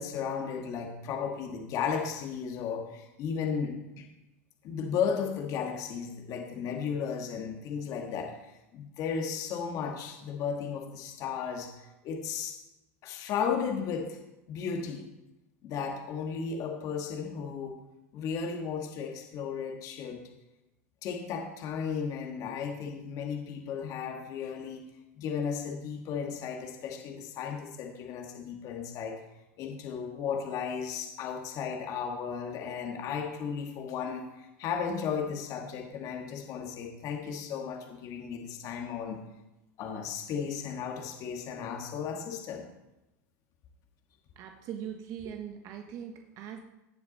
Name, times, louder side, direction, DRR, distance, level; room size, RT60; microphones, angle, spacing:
voice 1, 0.0-4.1 4.6-12.6 13.0-14.2 14.5-15.0 15.6-17.8 18.1-20.3 21.0-24.8 25.1-29.2 29.6-39.2 39.8-42.6, left 6 dB, 45° left, 3 dB, 1.8 m, -35 dB
voice 2, 44.4-46.6, right 9 dB, 45° right, 5 dB, 1.1 m, -41 dB
17.0 x 7.1 x 4.2 m, 0.96 s
hypercardioid pair, 120°, 8 cm